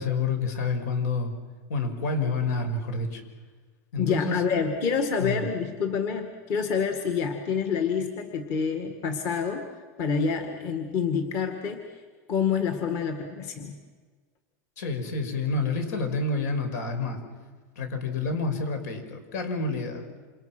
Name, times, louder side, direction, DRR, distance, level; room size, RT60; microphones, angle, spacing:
voice 1, 0.0-1.3 1.7-3.2 3.9-4.6 5.2-5.4 14.8-17.2 17.8-20.1, left 3 dB, 80° left, 6 dB, 6.0 m, -28 dB
voice 2, 4.0-9.7 10.0-11.8 12.3-13.8, left 6 dB, 35° left, 5 dB, 2.0 m, -27 dB
28.0 x 27.5 x 6.2 m, 1.5 s
supercardioid pair, 175°, 9 cm